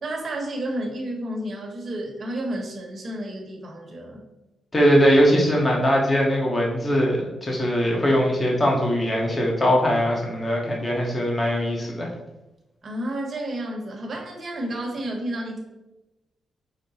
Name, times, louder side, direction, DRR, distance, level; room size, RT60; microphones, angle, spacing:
voice 1, 0.0-4.3 12.8-15.6, right 1 dB, 45° right, -1 dB, 1.1 m, -31 dB
voice 2, 4.7-12.1, equal, 25° left, -2 dB, 0.9 m, -21 dB
5.1 x 2.1 x 4.1 m, 0.99 s
cardioid pair, 100°, 0 cm